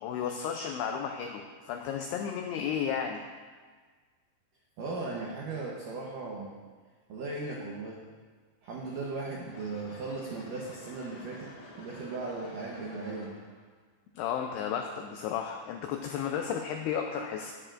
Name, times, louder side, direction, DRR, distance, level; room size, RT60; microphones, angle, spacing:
voice 1, 0.0-3.2 14.2-17.6, left 8 dB, 90° left, 3 dB, 2.3 m, -33 dB
voice 2, 4.8-6.5 7.1-8.0 8.6-13.3, right 3 dB, 85° right, -3 dB, 1.8 m, -37 dB
sound 1, 9.5-13.6, left 1 dB, 60° left, 2.9 m, -49 dB
13.5 x 10.0 x 2.5 m, 1.5 s
omnidirectional pair, 5.3 m